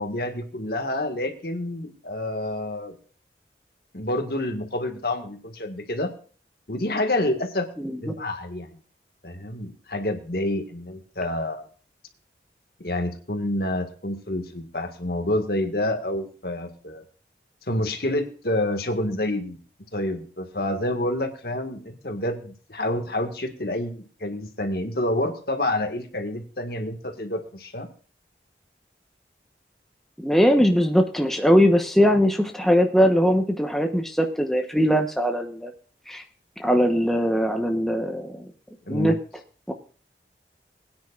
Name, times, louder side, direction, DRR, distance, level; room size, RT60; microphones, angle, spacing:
voice 1, 0.0-3.0 3.9-6.1 6.7-7.7 8.0-8.8 9.2-11.7 12.8-17.0 17.7-19.6 19.9-27.9 38.9-39.2, left 1 dB, 60° left, 6 dB, 1.8 m, -28 dB
voice 2, 7.8-8.1 30.2-35.7 36.1-36.2 36.6-38.5 38.9-39.1 39.7-39.8, equal, ahead, 3 dB, 1.0 m, -21 dB
21.5 x 9.7 x 2.5 m, 0.41 s
head